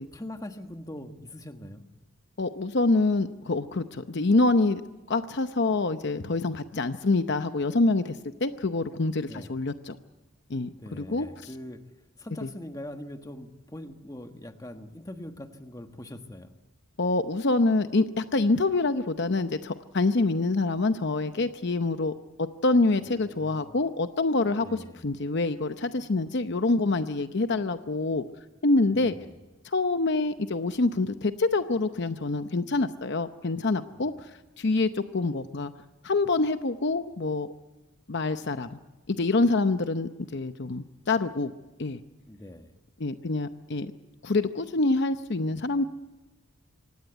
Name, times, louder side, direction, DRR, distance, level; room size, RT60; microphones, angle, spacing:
voice 1, 0.1-1.9 9.2-9.5 10.7-11.8 12.2-16.5 23.0-23.8 24.6-25.1 28.9-29.4 33.9-34.2 42.3-42.7, left 1 dB, 15° left, 7 dB, 1.4 m, -42 dB
voice 2, 2.4-4.8 5.1-10.0 10.5-11.3 12.4-12.5 17.0-22.1 22.4-28.2 28.6-29.1 29.6-35.7 36.0-37.5 38.1-38.8 39.1-41.5 41.8-42.0 43.0-43.9 44.2-45.8, left 3 dB, 55° left, 10 dB, 0.7 m, -26 dB
25.5 x 18.0 x 8.1 m, 1.1 s
head